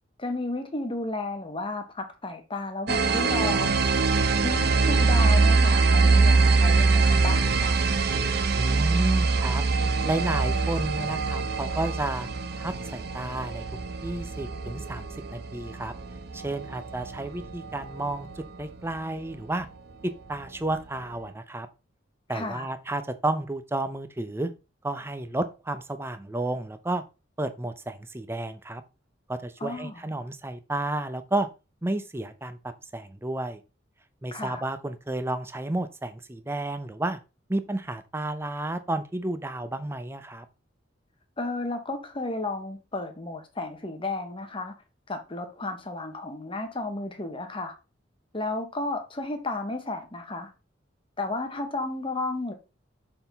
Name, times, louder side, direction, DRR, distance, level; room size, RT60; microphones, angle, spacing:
voice 1, 0.2-3.7 4.4-7.8 22.3-22.7 29.6-30.0 34.3-34.6 41.4-44.7 45.1-47.7 48.3-50.5 51.2-52.5, left 2 dB, 25° left, 1.0 m, -33 dB
sound 1, 2.9-18.3, right 3 dB, 55° right, 0.7 m, -23 dB
voice 2, 8.5-9.6 10.0-12.3 12.6-13.6 14.0-15.9 16.3-19.7 20.0-21.7 22.3-24.5 24.8-27.0 27.4-28.8 29.3-31.5 31.8-33.6 34.2-37.2 37.5-40.5, right 2 dB, 15° right, 0.5 m, -31 dB
6.8 x 3.9 x 4.0 m
head